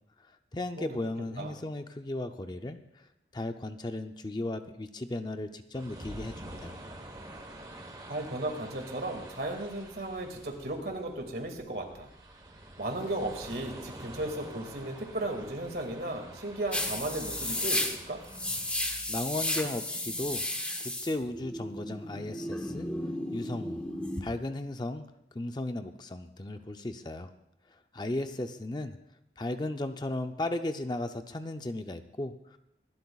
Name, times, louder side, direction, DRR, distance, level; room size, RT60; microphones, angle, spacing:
voice 1, 0.2-6.8 19.1-20.4 20.8-22.9 23.3-23.8 24.2-25.1 25.3-27.3 27.7-29.0 29.4-32.6, left 2 dB, 25° left, 8 dB, 0.5 m, -36 dB
sound 1, 5.7-18.9, right 1 dB, 20° right, 1.1 m, -47 dB
voice 2, 8.1-12.1 12.8-18.2, right 1 dB, 60° right, 4 dB, 2.1 m, -35 dB
sound 2, 16.7-24.2, left 1 dB, 5° left, 0.9 m, -33 dB
25.5 x 12.0 x 2.4 m, 0.84 s
head